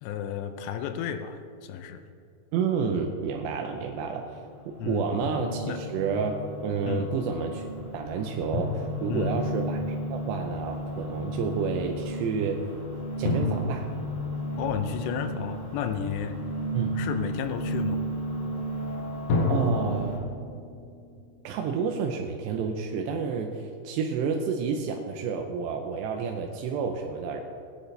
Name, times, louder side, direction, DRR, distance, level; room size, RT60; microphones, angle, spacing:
voice 1, 0.0-2.1 4.8-5.1 5.7-5.8 6.8-7.1 9.1-9.3 14.6-16.4 17.0-18.0, left 8 dB, 80° left, 8 dB, 2.6 m, -32 dB
voice 2, 2.5-4.3 4.7-7.6 7.9-9.8 10.1-12.6 13.2-13.9 16.7-17.0 19.5-20.2 21.4-27.4, right 5 dB, 80° right, 2 dB, 2.6 m, -30 dB
sound 1, 3.9-20.2, right 1 dB, 30° left, 3.3 m, -34 dB
Drum, 5.2-6.0 8.5-10.3 13.2-15.7 19.3-22.4, left 3 dB, 65° left, 3.1 m, -32 dB
19.0 x 10.5 x 3.3 m, 2.4 s
omnidirectional pair, 5.6 m